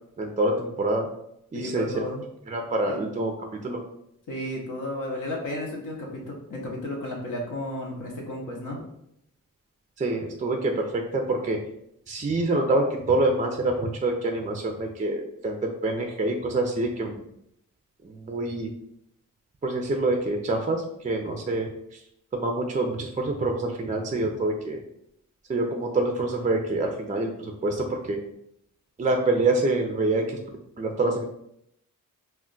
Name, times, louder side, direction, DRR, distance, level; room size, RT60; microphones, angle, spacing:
voice 1, 0.2-1.1 1.5-2.0 2.5-3.3 3.6-3.8 10.0-11.6 12.1-17.2 18.0-18.7 19.6-21.7 22.3-24.8 25.5-28.2 29.0-30.4 30.8-31.2, right 2 dB, 25° right, 3 dB, 0.3 m, -26 dB
voice 2, 1.5-2.3 2.9-3.0 4.3-8.8, left 1 dB, 65° left, -2 dB, 0.7 m, -33 dB
2.2 x 2.1 x 3.7 m, 0.76 s
cardioid pair, 70°, 33 cm